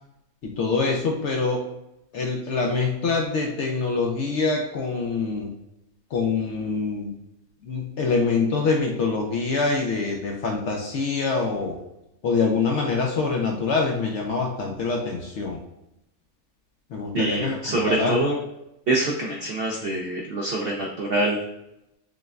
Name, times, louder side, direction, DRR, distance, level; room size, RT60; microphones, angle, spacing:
voice 1, 0.4-1.7 2.1-5.5 6.1-7.1 7.6-11.8 12.2-15.6 16.9-18.2, left 4 dB, 65° left, 0 dB, 0.7 m, -25 dB
voice 2, 17.1-18.4 18.9-21.4, right 2 dB, 70° right, 0 dB, 0.5 m, -25 dB
5.9 x 2.2 x 2.4 m, 0.86 s
omnidirectional pair, 1.6 m